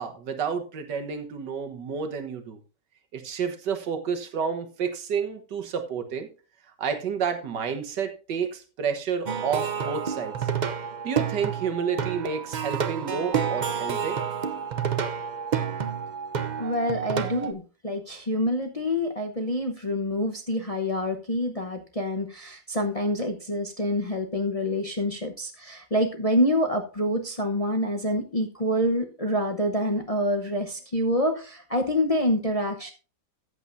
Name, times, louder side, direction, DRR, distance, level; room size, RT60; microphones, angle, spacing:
voice 1, 0.0-2.6 3.1-6.3 6.8-10.5 11.0-14.2, right 6 dB, 80° right, 7 dB, 1.9 m, -30 dB
Plucked string instrument, 9.3-17.5, right 7 dB, 60° right, 0.4 m, -29 dB
voice 2, 16.6-32.9, left 1 dB, 30° left, 3 dB, 0.7 m, -27 dB
14.0 x 8.3 x 2.6 m, 0.33 s
omnidirectional pair, 1.8 m